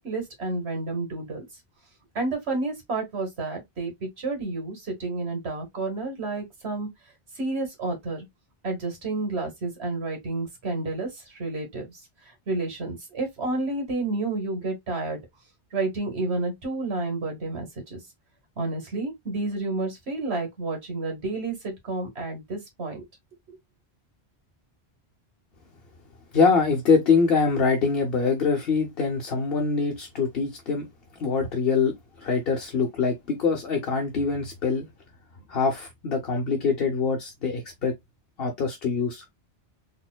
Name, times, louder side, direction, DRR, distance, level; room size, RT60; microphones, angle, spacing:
voice 1, 0.0-1.4 2.2-6.9 7.3-8.3 8.6-12.0 12.5-15.2 15.7-18.0 18.6-23.0 23.5-23.6, right 3 dB, 85° right, 2.0 m, -30 dB
voice 2, 26.3-30.8 31.2-34.9 35.5-37.9 38.4-39.3, left 5 dB, 65° left, 1.0 m, -24 dB
4.2 x 3.6 x 2.2 m
omnidirectional pair, 1.1 m